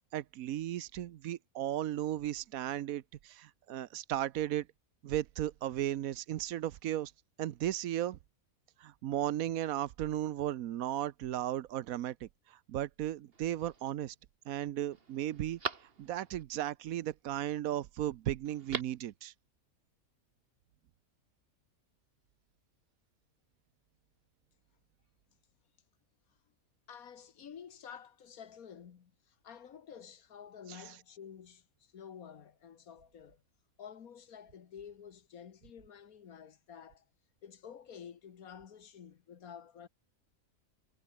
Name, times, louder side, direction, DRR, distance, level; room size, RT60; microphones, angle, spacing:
voice 1, 0.1-4.7 5.0-7.1 7.4-8.2 8.8-14.1 14.5-15.6 16.0-19.3, right 12 dB, 80° right, 1.1 m, -35 dB
Telephone, 13.3-13.9 14.4-14.5 14.9-16.4 18.4-19.1 19.4-19.5, right 4 dB, 40° right, 1.9 m, -42 dB
voice 2, 26.9-33.4 33.8-37.1 37.4-39.9, left 8 dB, 80° left, 1.8 m, -51 dB
omnidirectional pair, 1.5 m